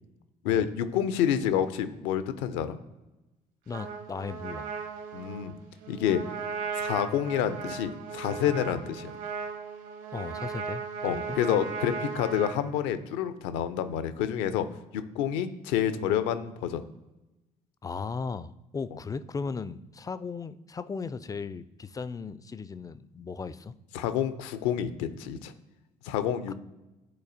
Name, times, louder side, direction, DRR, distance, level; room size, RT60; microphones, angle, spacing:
voice 1, 0.4-2.8 5.1-5.5 5.9-6.2 6.7-9.2 11.0-14.7 14.9-16.8 23.9-25.5 26.0-26.5, left 9 dB, 65° left, 12 dB, 0.5 m, -28 dB
voice 2, 3.7-4.7 10.1-10.8 11.1-11.4 17.8-23.7 26.5-26.6, left 5 dB, 15° left, 15 dB, 0.3 m, -36 dB
Trumpet, 3.7-12.6, right 5 dB, 70° right, 1.2 m, -37 dB
9.6 x 4.0 x 2.6 m, 1.0 s
figure-of-eight pair, 50°, 21 cm